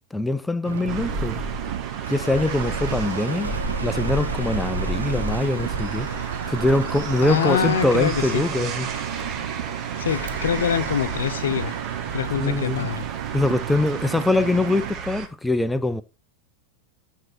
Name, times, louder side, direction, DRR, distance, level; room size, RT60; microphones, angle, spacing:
voice 1, 0.1-1.4 2.1-3.5 3.8-6.1 6.5-8.9 12.4-12.9 13.3-16.0, left 2 dB, 5° left, 0.6 m, -23 dB
Engine, 0.6-14.9, right 13 dB, 55° right, 0.4 m, -33 dB
sound 1, 0.9-15.3, right 4 dB, 30° right, 1.5 m, -32 dB
sound 2, 2.0-12.9, right 2 dB, 80° right, 1.1 m, -37 dB
voice 2, 7.2-8.4 10.0-11.8 12.1-13.0, left 8 dB, 65° left, 0.6 m, -24 dB
9.7 x 4.5 x 4.4 m
figure-of-eight pair, 90°, 0 cm